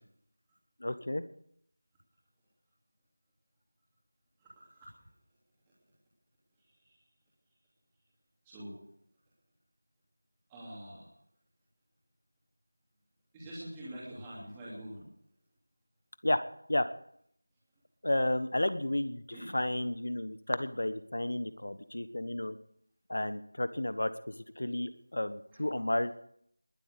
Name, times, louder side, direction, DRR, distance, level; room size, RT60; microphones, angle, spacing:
voice 1, 0.8-1.2 16.2-16.4 16.7-16.9 18.0-22.6 23.1-26.1, left 1 dB, 55° left, 13 dB, 1.4 m, -32 dB
voice 2, 10.5-11.0 13.3-15.0 19.3-19.5, right 1 dB, 5° right, -7 dB, 2.9 m, -44 dB
20.5 x 8.1 x 8.3 m, 0.69 s
figure-of-eight pair, 180°, 0 cm